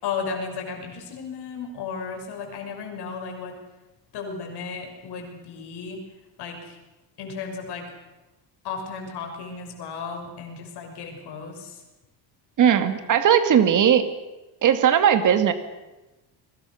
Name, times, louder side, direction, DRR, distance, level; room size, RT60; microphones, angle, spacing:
voice 1, 0.0-3.6 4.1-6.0 6.4-6.7 7.2-7.9 8.6-11.7, left 5 dB, 60° left, 3 dB, 6.4 m, -34 dB
voice 2, 12.6-14.0 14.6-15.5, right 8 dB, 40° right, 9 dB, 2.3 m, -18 dB
30.0 x 23.0 x 6.6 m, 1.1 s
cardioid pair, 170°, 46 cm